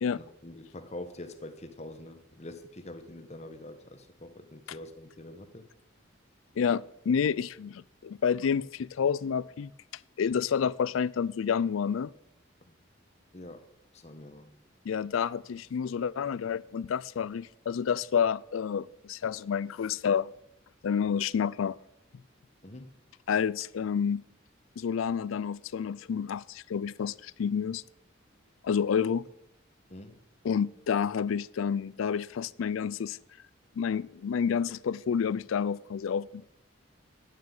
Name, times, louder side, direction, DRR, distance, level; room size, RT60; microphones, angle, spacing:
voice 1, 0.1-5.7 12.6-12.7 13.3-13.7 13.9-14.5 22.6-22.9 29.9-30.2, left 1 dB, 35° left, 1.1 m, -45 dB
voice 2, 6.6-9.7 10.2-12.1 14.9-20.3 20.8-21.8 23.3-24.2 24.8-27.8 28.6-29.3 30.4-33.2 33.8-36.4, left 7 dB, 85° left, 0.4 m, -29 dB
9.6 x 9.6 x 7.1 m
head